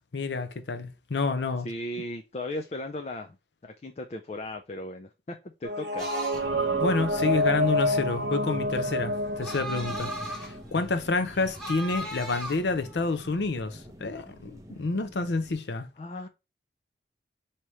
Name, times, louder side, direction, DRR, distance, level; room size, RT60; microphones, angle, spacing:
voice 1, 0.1-1.7 6.8-10.1 10.7-15.9, left 3 dB, 75° left, 0.6 m, -28 dB
voice 2, 1.6-3.4 3.6-6.1 16.0-16.3, left 1 dB, 35° left, 0.4 m, -36 dB
sound 1, 5.6-10.6, equal, 80° right, 0.6 m, -28 dB
sound 2, 6.0-13.7, right 1 dB, ahead, 1.1 m, -39 dB
sound 3, 6.3-15.5, equal, 20° right, 0.6 m, -45 dB
4.8 x 2.9 x 3.0 m
head